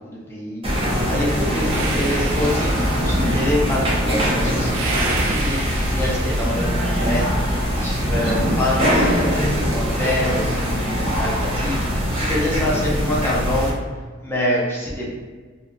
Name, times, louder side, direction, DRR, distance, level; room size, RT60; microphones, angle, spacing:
voice 1, 0.0-13.8 14.2-15.1, left 1 dB, 10° left, -6 dB, 0.7 m, -26 dB
sound 1, 0.6-13.7, equal, 30° right, 0.9 m, -22 dB
sound 2, 1.7-3.3 4.7-6.7, right 4 dB, 75° right, 0.5 m, -31 dB
4.0 x 2.5 x 2.3 m, 1.5 s
head